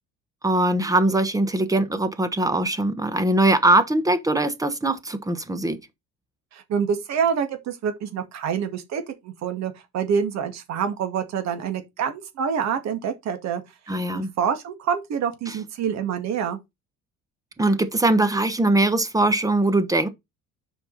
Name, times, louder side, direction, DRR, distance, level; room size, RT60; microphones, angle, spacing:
voice 1, 0.4-5.8 13.9-14.3 15.5-15.6 17.6-20.1, right 2 dB, 10° right, 1.1 m, -21 dB
voice 2, 6.5-13.6 14.1-16.6, right 7 dB, 55° right, 2.1 m, -26 dB
7.9 x 5.4 x 4.1 m
cardioid pair, 135°, 31 cm